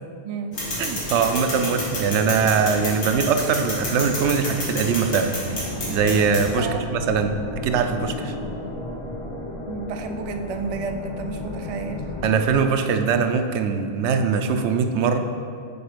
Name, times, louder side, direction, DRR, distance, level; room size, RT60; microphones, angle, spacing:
voice 1, 0.2-0.6 6.6-6.9 9.7-12.0, right 4 dB, 55° right, 6 dB, 0.4 m, -31 dB
sound 1, 0.5-6.5, left 1 dB, 75° left, 1.8 m, -29 dB
voice 2, 0.8-7.4 7.6-8.3 12.2-15.2, right 6 dB, 85° right, 7 dB, 0.9 m, -22 dB
sound 2, 5.5-12.4, left 1 dB, 35° left, 0.6 m, -33 dB
6.9 x 4.3 x 5.0 m, 2.2 s
omnidirectional pair, 1.1 m